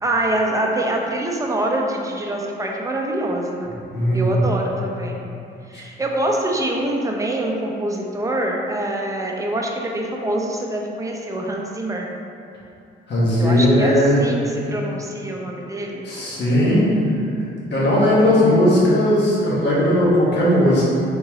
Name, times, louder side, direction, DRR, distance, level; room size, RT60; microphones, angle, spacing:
voice 1, 0.0-3.7 4.1-5.2 5.7-12.1 13.4-16.1, right 1 dB, 15° right, 0 dB, 0.6 m, -25 dB
voice 2, 3.9-4.4 13.1-14.2 16.0-16.9 17.7-20.8, left 1 dB, 60° left, -7 dB, 1.5 m, -17 dB
4.0 x 3.7 x 3.0 m, 2.6 s
cardioid pair, 90°, 20 cm